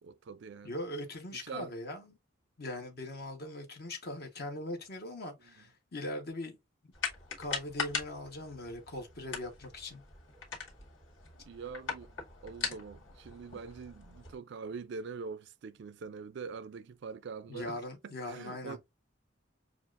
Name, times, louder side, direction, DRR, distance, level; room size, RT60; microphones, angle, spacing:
voice 1, 0.0-0.8 1.3-1.7 5.5-5.6 11.5-12.1 12.4-17.8 18.0-18.8, right 5 dB, 60° right, 0.4 m, -44 dB
voice 2, 0.6-2.2 2.6-6.6 7.4-10.0 17.5-18.8, left 1 dB, 55° left, 1.1 m, -40 dB
sound 1, 6.9-14.3, left 5 dB, 75° left, 2.2 m, -41 dB
7.0 x 2.4 x 2.4 m
head